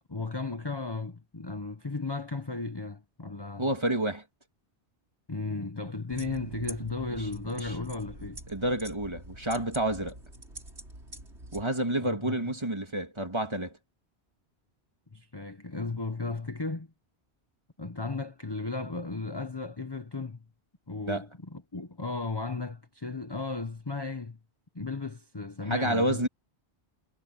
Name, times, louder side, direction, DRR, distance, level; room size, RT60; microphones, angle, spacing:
voice 1, 0.1-3.7 5.3-8.4 12.0-12.4 15.1-16.9 17.8-20.4 20.9-24.4 24.7-26.2, left 3 dB, 25° left, 1.1 m, -35 dB
voice 2, 3.6-4.2 7.6-7.7 8.5-10.2 11.5-13.8 21.1-21.3 25.7-26.3, right 1 dB, 25° right, 2.4 m, -29 dB
sound 1, 6.1-11.6, right 1 dB, 85° right, 6.4 m, -44 dB
omnidirectional pair, 1.1 m